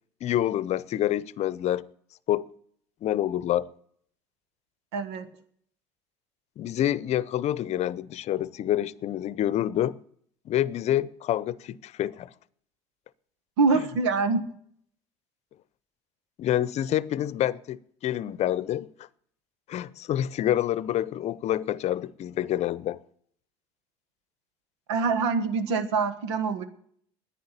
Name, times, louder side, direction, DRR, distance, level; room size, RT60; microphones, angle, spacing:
voice 1, 0.2-1.8 2.3-2.5 3.0-3.7 6.6-10.0 10.5-12.3 16.4-18.9 19.7-23.0, left 12 dB, 50° left, 0.7 m, -27 dB
voice 2, 4.9-5.3 13.6-14.4 24.9-26.6, right 4 dB, 85° right, 1.4 m, -25 dB
10.5 x 9.6 x 9.8 m
hypercardioid pair, 75°, 14 cm